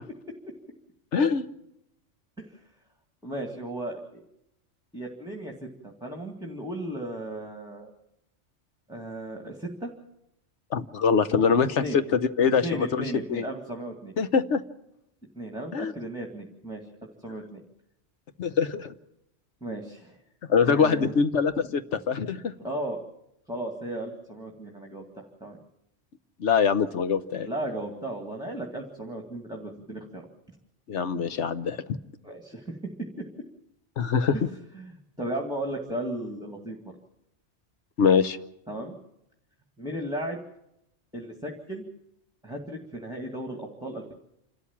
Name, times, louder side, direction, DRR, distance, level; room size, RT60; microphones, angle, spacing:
voice 1, 1.1-1.4 10.7-13.0 13.3-13.5 14.2-14.6 15.7-15.9 18.4-18.9 20.5-22.5 26.4-27.5 30.9-32.0 34.0-34.3 38.0-38.4, left 6 dB, 85° left, 11 dB, 1.3 m, -23 dB
voice 2, 3.2-4.2 4.9-7.9 8.9-9.9 11.8-12.0 12.6-14.1 15.3-16.8 17.2-17.6 19.6-20.2 20.6-21.2 22.6-23.0 23.5-25.6 27.4-30.3 32.2-32.8 33.2-33.3 34.7-36.8 38.7-38.9 39.8-40.4 41.1-41.8 42.4-44.1, right 1 dB, 5° right, 1 dB, 2.1 m, -35 dB
28.0 x 13.0 x 7.3 m, 0.82 s
omnidirectional pair, 1.2 m